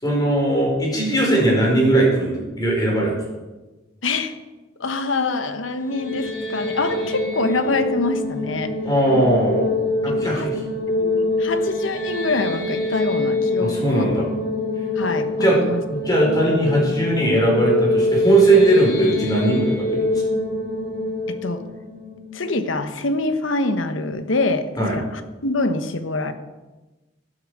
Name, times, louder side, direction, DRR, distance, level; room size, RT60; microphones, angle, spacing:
voice 1, 0.0-3.1 8.8-9.7 10.0-10.6 13.6-14.3 15.4-15.6 15.8-20.2 24.8-25.0, right 1 dB, 20° left, -2 dB, 4.6 m, -19 dB
voice 2, 4.0-4.3 4.8-8.8 10.0-10.5 10.9-14.0 15.0-15.8 21.3-21.6 22.3-26.3, left 3 dB, 80° left, 9 dB, 1.2 m, -25 dB
sound 1, 5.7-22.9, left 2 dB, 65° left, 4.0 m, -25 dB
13.0 x 12.0 x 4.9 m, 1.2 s
head